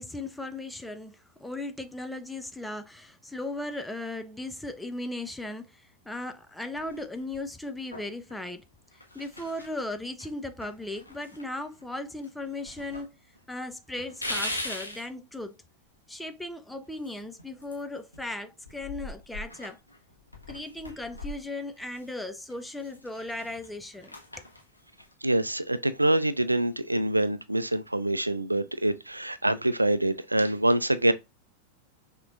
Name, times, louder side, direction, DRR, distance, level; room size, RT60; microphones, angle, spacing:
voice 1, 0.0-8.6 9.1-13.1 13.5-15.6 16.1-19.8 20.5-24.4, left 2 dB, 5° left, 0.5 m, -37 dB
sound 1, 6.8-7.5 7.9-8.4 8.9-9.8 10.2-10.3 10.6-11.9 12.2-13.1 13.3-13.4 14.0-15.1 16.9-18.3 18.6-22.2 22.5-25.1, left 1 dB, 85° left, 1.0 m, -41 dB
voice 2, 25.2-31.1, right 1 dB, 85° right, 0.4 m, -25 dB
6.0 x 2.9 x 2.5 m
figure-of-eight pair, 90°, 0 cm